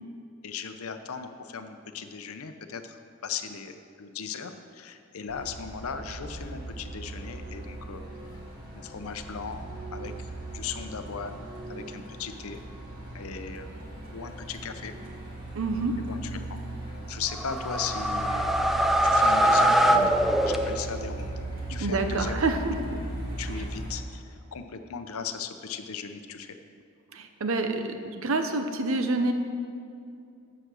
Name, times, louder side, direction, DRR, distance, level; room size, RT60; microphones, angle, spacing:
voice 1, 0.4-8.0 8.7-12.6 13.1-13.7 14.1-14.9 16.1-16.4 16.9-18.6 19.0-20.1 20.4-21.4 21.7-23.0 23.4-26.6, left 6 dB, 80° left, 8 dB, 0.6 m, -38 dB
Truck, 5.3-24.0, right 2 dB, 40° right, 1.9 m, -38 dB
voice 2, 15.5-16.0 21.7-23.0 23.5-23.6 27.1-29.3, right 2 dB, 70° right, 7 dB, 0.8 m, -28 dB
sound 1, 17.3-21.1, right 1 dB, ahead, 0.3 m, -23 dB
8.0 x 7.4 x 6.2 m, 2.5 s
head